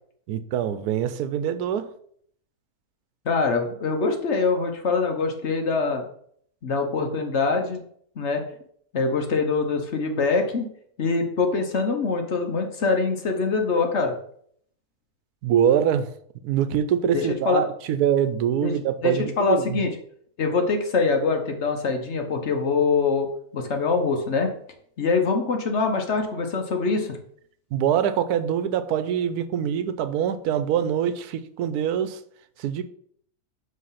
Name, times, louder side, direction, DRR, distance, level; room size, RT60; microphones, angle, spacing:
voice 1, 0.3-1.9 15.4-16.1 16.4-19.8 27.7-32.2 32.6-32.8, right 9 dB, 90° right, 11 dB, 1.1 m, -24 dB
voice 2, 3.3-6.0 6.6-7.8 8.2-8.4 8.9-10.7 11.0-14.1 17.1-17.6 18.6-18.7 19.0-19.9 20.4-23.3 23.5-24.5 25.0-27.2, left 4 dB, 55° left, 4 dB, 1.1 m, -24 dB
7.6 x 3.2 x 5.6 m, 0.64 s
omnidirectional pair, 1.6 m